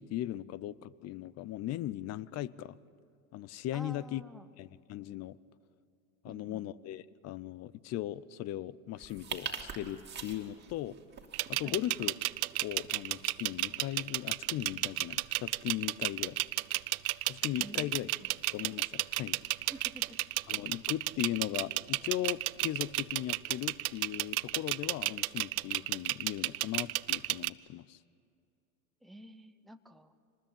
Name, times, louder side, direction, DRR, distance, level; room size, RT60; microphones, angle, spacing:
voice 1, 0.0-2.8 3.3-4.2 4.6-5.4 6.2-11.0 11.5-12.1 12.6-16.4 17.3-18.1 18.5-19.4 20.5-28.0, left 13 dB, 35° left, 20 dB, 0.7 m, -38 dB
voice 2, 3.7-4.5 6.2-6.7 11.6-11.8 17.6-18.3 19.6-20.2 29.0-30.1, right 1 dB, ahead, 7 dB, 0.9 m, -50 dB
sound 1, 9.0-21.1, right 6 dB, 25° right, 2.5 m, -49 dB
sound 2, 11.3-27.5, right 20 dB, 70° right, 0.6 m, -32 dB
25.0 x 20.0 x 8.8 m, 2.5 s
hypercardioid pair, 100°, 44 cm